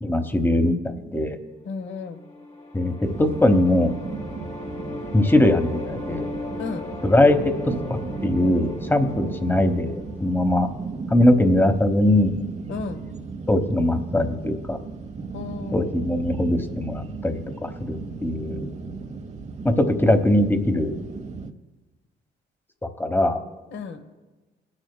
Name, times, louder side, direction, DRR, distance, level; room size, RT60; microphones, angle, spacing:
voice 1, 0.0-1.4 2.7-2.9 3.2-3.9 5.1-6.2 7.0-7.4 8.2-9.9 10.2-10.7 11.1-12.3 13.5-14.8 15.7-18.6 19.6-20.9 23.0-23.4, left 1 dB, 10° left, 8 dB, 1.0 m, -20 dB
voice 2, 1.6-2.2 6.6-6.9 12.7-13.0 15.3-15.9 23.7-24.0, left 5 dB, 65° left, 9 dB, 1.0 m, -33 dB
sound 1, 1.9-11.0, left 2 dB, 30° left, 1.4 m, -37 dB
sound 2, 3.0-21.5, right 4 dB, 35° right, 0.8 m, -35 dB
24.5 x 9.8 x 2.2 m, 1.2 s
cardioid pair, 90°, 20 cm